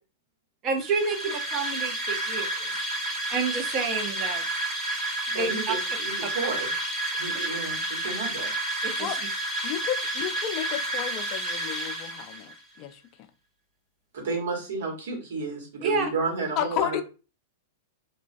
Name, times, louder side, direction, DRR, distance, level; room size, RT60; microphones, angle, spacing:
voice 1, 0.6-2.9 3.3-4.6 5.3-5.7 8.8-9.1 15.8-16.1, right 4 dB, 35° right, 0.6 m, -29 dB
sound 1, 0.7-12.6, right 1 dB, 15° right, 1.1 m, -30 dB
voice 2, 5.3-6.7 7.2-8.5 14.1-17.0, right 4 dB, 75° right, 1.2 m, -32 dB
voice 3, 9.6-13.0 16.6-17.0, left 11 dB, 45° left, 0.3 m, -32 dB
2.3 x 2.2 x 2.5 m
hypercardioid pair, 110°, 0 cm